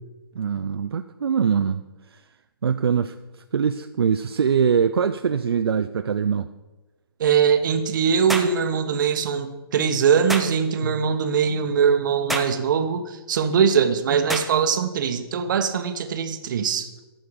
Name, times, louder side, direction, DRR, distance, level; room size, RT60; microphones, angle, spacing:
voice 1, 0.3-1.8 2.1-2.2 2.6-3.1 3.5-6.5 10.8-11.1, right 7 dB, 75° right, 9 dB, 0.5 m, -23 dB
voice 2, 7.2-16.9, right 7 dB, 50° right, 9 dB, 1.1 m, -22 dB
sound 1, 8.3-8.6 10.3-10.5 12.3-12.6 14.3-14.5, right 1 dB, ahead, 0.8 m, -27 dB
14.0 x 6.4 x 5.2 m, 1.2 s
hypercardioid pair, 135°, 13 cm